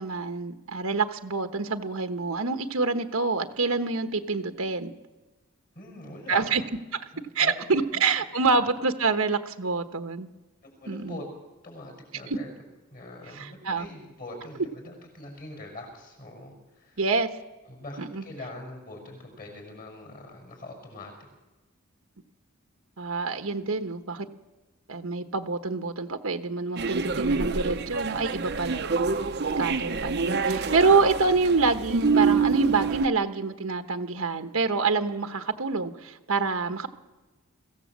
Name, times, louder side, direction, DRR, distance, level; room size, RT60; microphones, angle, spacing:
voice 1, 0.0-4.9 6.3-6.6 7.3-10.3 10.9-11.2 12.3-12.4 13.3-13.9 17.0-17.3 18.0-18.2 23.0-24.3 24.9-29.0 29.6-36.9, right 4 dB, 75° right, 7 dB, 1.2 m, -26 dB
voice 2, 5.7-6.5 7.1-7.5 7.9-8.0 8.6-8.7 10.6-11.2 11.6-12.5 12.9-17.0 17.7-21.3, left 2 dB, 40° left, 3 dB, 5.9 m, -43 dB
sound 1, 26.8-33.1, right 4 dB, 50° right, 0.8 m, -27 dB
23.0 x 16.0 x 7.5 m, 1.1 s
head